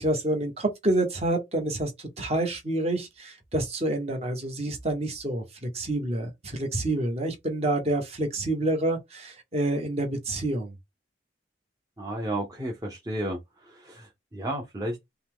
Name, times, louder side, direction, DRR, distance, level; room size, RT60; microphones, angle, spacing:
voice 1, 0.0-10.7, right 1 dB, 35° right, 1.4 m, -28 dB
voice 2, 12.0-13.4 13.6-15.0, right 1 dB, 20° right, 0.9 m, -32 dB
5.5 x 2.3 x 3.7 m
head